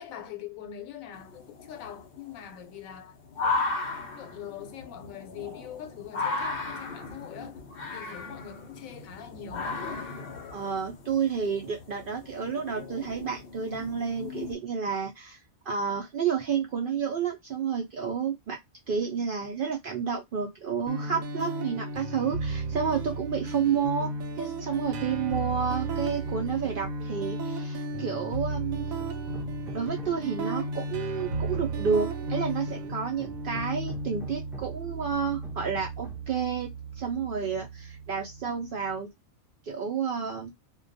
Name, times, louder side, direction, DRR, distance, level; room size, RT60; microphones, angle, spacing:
voice 1, 0.0-3.2 3.4-3.6 4.1-7.6 7.9-9.9, left 9 dB, 80° left, 1.0 m, -43 dB
sound 1, 1.1-14.6, left 3 dB, 55° left, 0.7 m, -36 dB
voice 2, 10.5-18.6 18.9-24.1 24.4-28.8 29.7-36.7 37.0-39.1 39.6-40.5, right 6 dB, 70° right, 0.5 m, -30 dB
sound 2, 20.9-38.8, right 2 dB, 90° right, 1.0 m, -34 dB
Hammer, 29.0-30.4 30.8-32.2 32.8-34.9 35.4-36.4, equal, 5° right, 0.3 m, -48 dB
2.3 x 2.2 x 2.5 m
omnidirectional pair, 1.4 m